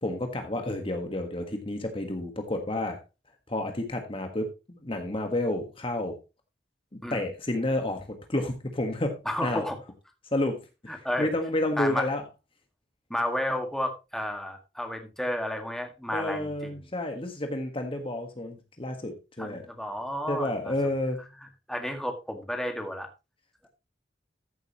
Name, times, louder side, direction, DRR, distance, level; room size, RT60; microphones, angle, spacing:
voice 1, 0.0-3.0 3.5-6.2 7.1-9.6 10.3-10.6 10.8-10.9 11.2-12.2 16.1-19.6 20.3-21.2, left 1 dB, 30° left, 5 dB, 1.5 m, -30 dB
voice 2, 9.3-9.8 10.9-11.3 11.8-12.1 13.1-16.9 19.4-20.7 21.7-23.1, left 1 dB, 5° left, 4 dB, 1.9 m, -32 dB
14.0 x 7.9 x 3.0 m, 0.26 s
head